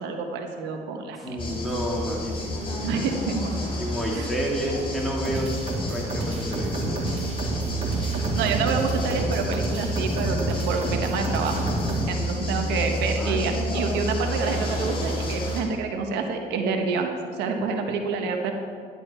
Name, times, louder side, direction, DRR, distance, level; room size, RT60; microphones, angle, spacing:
voice 1, 0.0-1.4 2.8-3.7 4.1-4.3 8.3-11.6 12.1-18.5, right 4 dB, 85° right, 4 dB, 1.3 m, -28 dB
voice 2, 1.2-3.3 3.8-5.5 5.9-7.3 13.2-13.4, equal, ahead, -4 dB, 2.9 m, -30 dB
sound 1, 1.4-15.6, equal, 30° left, 3.6 m, -30 dB
sound 2, 5.2-12.1, right 2 dB, 40° right, 2.9 m, -30 dB
12.0 x 11.0 x 4.5 m, 2.2 s
cardioid pair, 110°, 17 cm